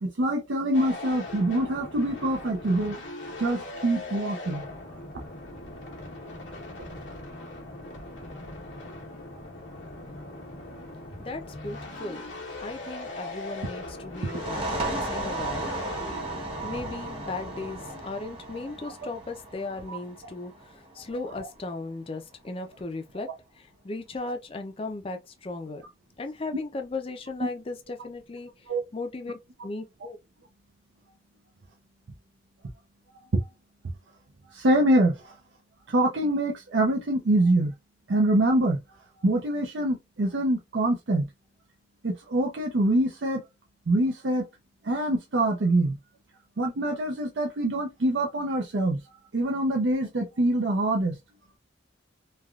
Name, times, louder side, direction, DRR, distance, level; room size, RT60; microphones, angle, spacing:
voice 1, 0.0-3.0 3.4-4.7 6.9-7.0 14.2-14.4 19.9-20.0 28.7-28.8 34.5-35.3 35.9-37.7 38.1-38.8 39.2-41.3 42.0-43.4 43.9-44.4 44.8-46.0 46.6-49.0 49.3-51.2, right 1 dB, 75° right, 0.6 m, -25 dB
sound 1, 0.7-18.0, left 2 dB, 85° left, 1.0 m, -40 dB
voice 2, 11.2-12.2 12.6-15.7 16.6-23.3 23.6-25.8 26.2-28.5 28.9-30.2, left 3 dB, 30° left, 0.5 m, -36 dB
sound 2, 14.2-21.6, right 2 dB, 30° right, 0.9 m, -35 dB
3.3 x 2.3 x 2.3 m
head